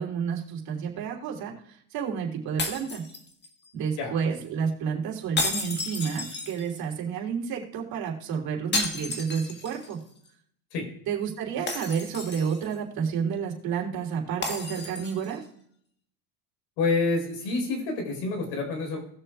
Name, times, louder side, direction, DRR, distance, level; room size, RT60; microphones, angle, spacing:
voice 1, 0.0-3.0 3.7-10.0 11.1-15.4, right 6 dB, 50° right, 0 dB, 3.3 m, -30 dB
sound 1, 2.6-3.7 5.4-6.9 8.7-9.9 10.3-10.4 11.7-12.7 14.4-15.4, left 3 dB, 25° left, 1.7 m, -32 dB
voice 2, 16.8-19.0, left 3 dB, 70° left, 2 dB, 4.5 m, -27 dB
19.5 x 6.9 x 2.4 m, 0.67 s
supercardioid pair, 130°, 44 cm